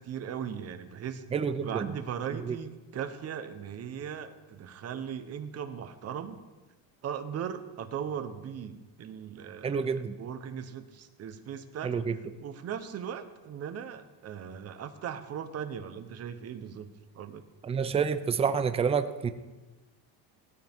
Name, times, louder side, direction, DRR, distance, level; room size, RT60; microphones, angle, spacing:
voice 1, 0.0-1.3 1.6-6.4 7.0-12.1 12.4-17.4, right 8 dB, 35° right, 9 dB, 1.1 m, -38 dB
voice 2, 1.3-1.9 2.5-2.6 9.6-10.2 11.8-12.2 17.6-19.3, right 6 dB, 15° right, 10 dB, 0.5 m, -28 dB
18.5 x 13.5 x 3.7 m, 1.2 s
cardioid pair, 160°, 42 cm